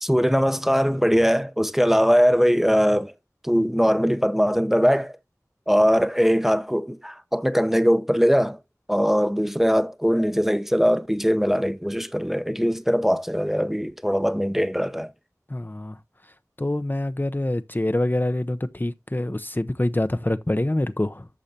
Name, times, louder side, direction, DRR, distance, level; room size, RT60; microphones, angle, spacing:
voice 1, 0.0-3.2 3.4-5.2 5.7-8.6 8.9-15.1, equal, 5° right, 0.8 m, -21 dB
voice 2, 15.5-16.0 16.6-21.3, left 1 dB, 30° left, 0.7 m, -25 dB
12.0 x 7.3 x 2.7 m
wide cardioid pair, 45°, 6 cm